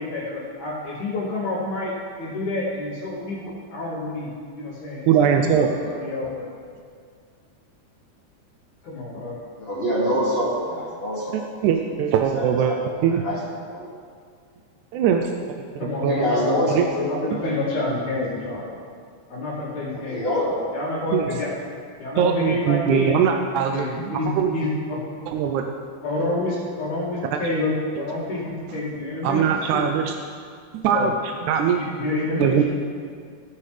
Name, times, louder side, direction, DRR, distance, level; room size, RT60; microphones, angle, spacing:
voice 1, 0.0-1.9 2.2-6.5 8.8-9.4 15.8-18.8 19.3-21.5 22.0-23.2 23.7-25.0 26.0-27.7 28.0-29.4 29.7-29.9 30.9-31.1 31.7-32.6, left 2 dB, 80° left, -11 dB, 3.8 m, -28 dB
voice 2, 5.1-5.7 11.3-12.7 13.0-13.2 14.9-15.3 15.7-16.3 16.7-16.9 21.1-21.3 22.2-24.5 25.3-25.6 27.3-27.4 28.0-28.1 29.2-30.1 30.7-31.1 31.4-31.8 32.4-32.6, right 8 dB, 85° right, 4 dB, 2.0 m, -21 dB
voice 3, 9.6-11.4 12.4-13.4 13.6-13.9 16.0-17.1 20.1-20.5, equal, 20° left, -6 dB, 1.9 m, -25 dB
16.5 x 9.8 x 3.3 m, 2.1 s
omnidirectional pair, 3.4 m